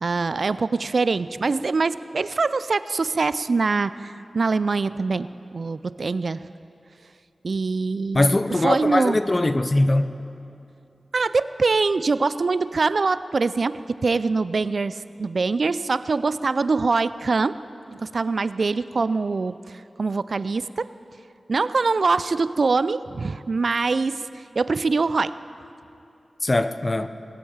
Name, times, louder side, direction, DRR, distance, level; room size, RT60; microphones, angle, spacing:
voice 1, 0.0-6.5 7.4-8.4 8.6-9.2 11.1-17.6 17.9-19.6 20.0-20.9 21.5-25.4, right 4 dB, 65° right, 15 dB, 0.3 m, -23 dB
voice 2, 8.1-10.1 26.4-27.1, left 2 dB, 35° left, 11 dB, 0.6 m, -21 dB
19.0 x 8.4 x 7.1 m, 2.7 s
cardioid pair, 45°, 0 cm